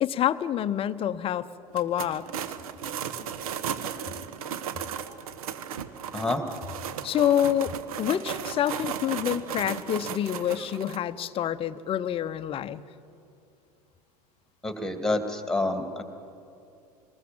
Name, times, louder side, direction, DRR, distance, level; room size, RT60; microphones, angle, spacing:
voice 1, 0.0-1.5 1.7-2.2 7.0-12.8, left 10 dB, 30° left, 11 dB, 0.7 m, -27 dB
sound 1, 1.7-11.0, right 8 dB, 65° right, 1.2 m, -35 dB
voice 2, 14.6-16.0, left 2 dB, 5° left, 7 dB, 2.3 m, -28 dB
24.0 x 20.0 x 7.5 m, 2.7 s
figure-of-eight pair, 80°, 20 cm